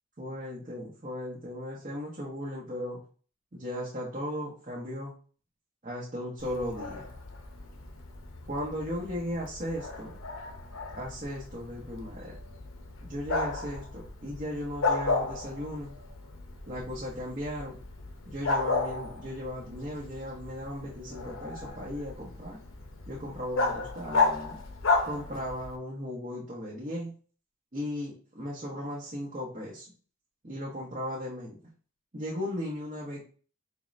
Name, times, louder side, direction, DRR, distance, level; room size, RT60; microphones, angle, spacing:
voice 1, 0.2-3.0 3.5-5.1 5.8-7.1 8.5-10.2 10.9-12.3 13.0-15.9 16.7-17.8 18.3-22.6 23.0-24.6 25.1-27.1 27.7-29.9 30.4-31.6 32.1-33.2, equal, 40° right, -5 dB, 0.9 m, -36 dB
Bark, 6.4-25.8, left 3 dB, 75° left, 0.8 m, -34 dB
4.4 x 3.1 x 2.6 m, 0.40 s
head